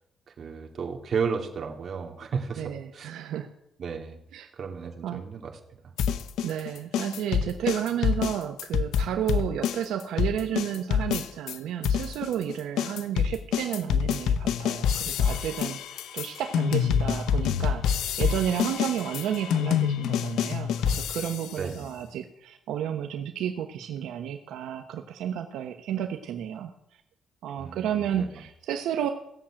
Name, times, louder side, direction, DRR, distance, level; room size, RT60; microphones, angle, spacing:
voice 1, 0.3-3.1 3.8-4.2 4.6-5.8 21.6-21.9 27.6-28.3, right 6 dB, 50° right, 3 dB, 2.5 m, -33 dB
voice 2, 2.6-3.5 4.3-4.5 5.0-5.2 6.4-26.7 27.4-29.1, right 9 dB, 90° right, 6 dB, 1.0 m, -32 dB
sound 1, 6.0-11.6 11.8-21.6, left 8 dB, 85° left, 0.9 m, -27 dB
17.0 x 7.4 x 8.9 m, 0.79 s
cardioid pair, 110°, 0 cm